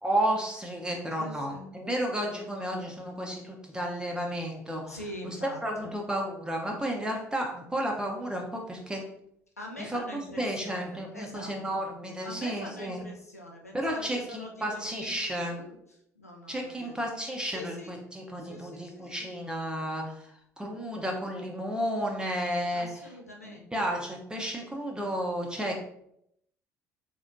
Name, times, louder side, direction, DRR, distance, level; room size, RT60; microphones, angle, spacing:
voice 1, 0.0-5.0 5.2-5.4 5.6-9.1 9.8-13.0 13.7-15.6 16.5-20.3 20.6-22.9 23.4-25.8, equal, 10° right, 0 dB, 0.7 m, -32 dB
voice 2, 1.2-1.8 4.9-5.9 9.6-11.8 12.2-17.0 17.5-18.0 18.4-19.3 22.7-23.9, left 1 dB, 90° left, 0 dB, 0.5 m, -44 dB
4.1 x 3.0 x 2.5 m, 0.75 s
figure-of-eight pair, 55°, 8 cm